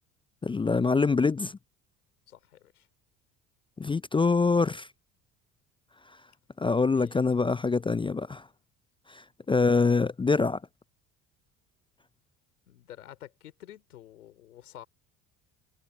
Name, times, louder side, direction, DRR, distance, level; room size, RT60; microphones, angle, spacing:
voice 1, 0.4-1.6 3.8-4.9 6.6-8.4 9.1-10.6, left 4 dB, 15° left, 0.4 m, -25 dB
voice 2, 2.3-2.9 6.8-7.2 12.7-14.9, left 12 dB, 85° left, 3.7 m, -50 dB
hypercardioid pair, 60°, 43 cm